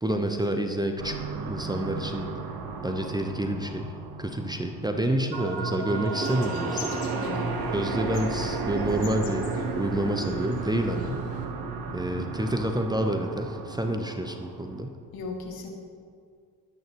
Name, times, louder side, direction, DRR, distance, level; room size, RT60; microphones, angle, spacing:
voice 1, 0.0-2.3 2.8-3.9 4.2-7.0 7.7-11.3 11.9-15.0, right 1 dB, 10° right, 5 dB, 1.0 m, -28 dB
sound 1, 1.0-14.8, right 4 dB, 50° right, 1.5 m, -33 dB
sound 2, 6.2-11.5, left 6 dB, 65° left, 1.7 m, -43 dB
voice 2, 7.1-7.7 15.1-15.7, left 4 dB, 50° left, 0 dB, 2.3 m, -37 dB
22.5 x 9.3 x 3.1 m, 2.1 s
figure-of-eight pair, 50°, 48 cm